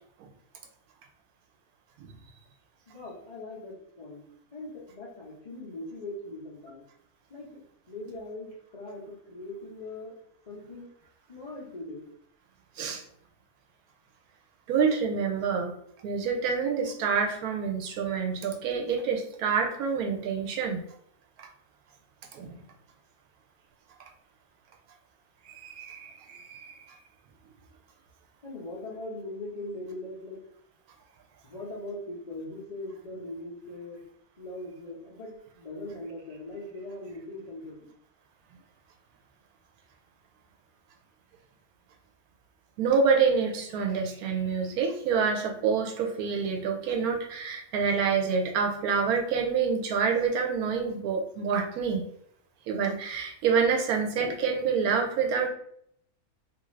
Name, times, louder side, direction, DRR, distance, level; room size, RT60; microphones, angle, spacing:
voice 1, 2.9-4.2 4.5-6.8 7.3-10.2 10.5-10.9 11.3-12.1 28.4-30.4 31.4-34.0 34.4-37.9, left 2 dB, 65° left, -6 dB, 0.3 m, -40 dB
voice 2, 14.7-15.7 16.0-20.8 21.4-21.5 22.3-22.5 25.5-26.9 42.8-52.1 52.7-55.5, right 5 dB, 80° right, 2 dB, 1.0 m, -27 dB
2.6 x 2.5 x 3.1 m, 0.69 s
omnidirectional pair, 1.6 m